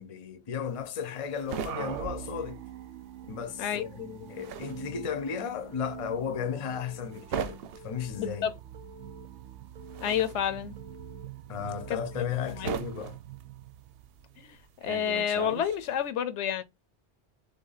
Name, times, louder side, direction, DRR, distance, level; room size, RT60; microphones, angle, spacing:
voice 1, 0.0-2.7 3.2-8.5 11.5-13.2, left 7 dB, 40° left, 0.5 m, -35 dB
sound 1, 0.7-3.2 3.5-16.1, right 7 dB, 65° right, 0.7 m, -40 dB
sound 2, 1.7-14.5, right 11 dB, 90° right, 0.9 m, -44 dB
Telephone, 4.7-5.2 5.7-6.2 6.7-7.2 7.7-8.3 8.7-9.3 9.8-10.3 10.8-11.3 11.8-12.3, left 1 dB, 40° right, 0.8 m, -51 dB
voice 2, 8.2-8.5 10.0-10.8 11.9-12.0 12.5-12.7 14.4-16.6, left 9 dB, 85° left, 0.9 m, -30 dB
3.7 x 3.3 x 4.0 m
omnidirectional pair, 1.2 m